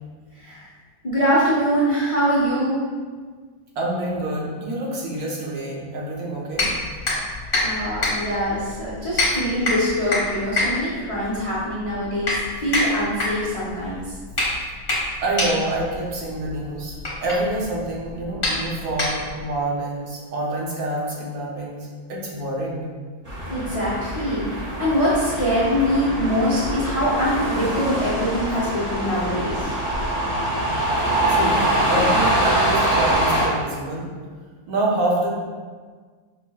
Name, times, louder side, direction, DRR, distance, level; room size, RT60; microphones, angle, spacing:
voice 1, 0.3-0.7 1.0-2.8 7.6-14.0 23.5-29.8, equal, 60° left, -9 dB, 0.3 m, -23 dB
voice 2, 3.8-6.7 15.2-22.9 31.3-34.1 34.7-35.3, right 1 dB, 75° right, -4 dB, 1.2 m, -27 dB
sound 1, 6.5-19.5, left 2 dB, 40° left, 1.1 m, -27 dB
sound 2, 23.3-33.5, right 1 dB, 25° right, 0.4 m, -24 dB
5.5 x 2.0 x 2.2 m, 1.5 s
omnidirectional pair, 1.6 m